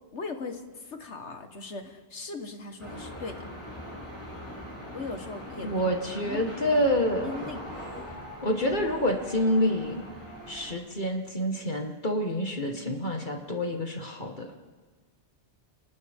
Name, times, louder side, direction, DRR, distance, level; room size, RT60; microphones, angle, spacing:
voice 1, 0.1-3.5 4.9-5.8 6.2-6.8 7.2-7.7, left 3 dB, 75° left, 6 dB, 1.8 m, -39 dB
sound 1, 2.8-10.7, equal, 10° left, 7.3 m, -41 dB
voice 2, 5.6-7.3 8.4-10.0 10.5-14.5, equal, 45° left, 2 dB, 1.9 m, -27 dB
30.0 x 28.0 x 3.7 m, 1.4 s
omnidirectional pair, 1.2 m